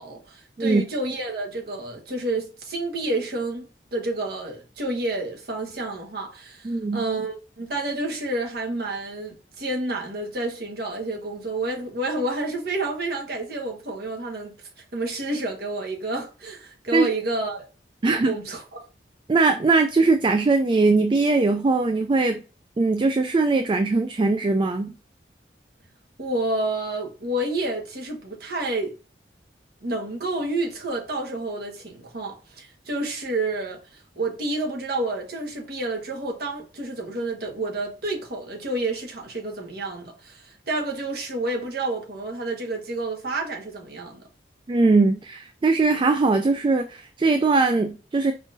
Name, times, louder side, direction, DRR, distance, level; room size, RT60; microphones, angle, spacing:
voice 1, 0.0-14.6 14.9-17.7 18.2-18.8 26.2-28.9 29.8-44.2, right 2 dB, 60° right, 1.4 m, -29 dB
voice 2, 6.6-7.0 16.9-17.1 18.0-18.3 19.3-22.4 22.8-24.9 44.7-48.3, right 3 dB, 30° right, 0.3 m, -20 dB
5.0 x 3.7 x 2.6 m
head